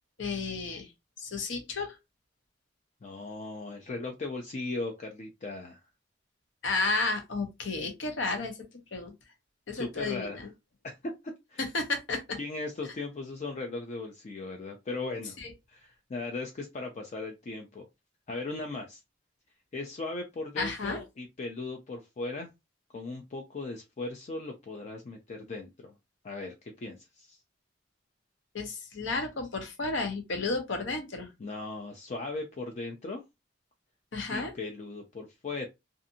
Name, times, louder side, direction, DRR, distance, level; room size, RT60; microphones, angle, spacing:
voice 1, 0.2-0.9 1.2-1.9 6.6-8.5 8.9-9.1 9.7-10.5 11.7-12.4 15.4-15.5 20.6-21.0 28.5-31.3 34.1-34.5, left 3 dB, 75° left, 0.8 m, -32 dB
voice 2, 3.0-5.8 9.7-10.5 10.8-11.1 11.5-11.7 12.4-15.4 15.7-17.8 18.3-19.0 19.7-22.5 22.9-25.9 26.2-27.4 31.4-33.2 34.3-35.7, left 3 dB, 40° left, 0.4 m, -38 dB
2.6 x 2.5 x 2.6 m
head